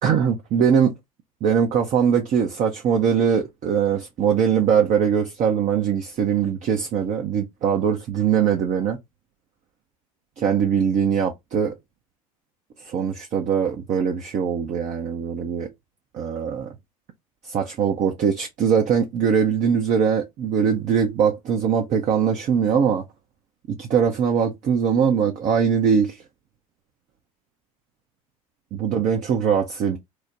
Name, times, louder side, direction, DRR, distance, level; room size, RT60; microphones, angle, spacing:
voice 1, 0.0-1.0 1.4-9.0 10.4-11.7 12.8-15.7 16.1-16.7 17.4-23.0 23.8-26.2 28.7-30.0, right 7 dB, 40° right, 0.6 m, -21 dB
3.1 x 2.1 x 3.8 m
figure-of-eight pair, 70°, 19 cm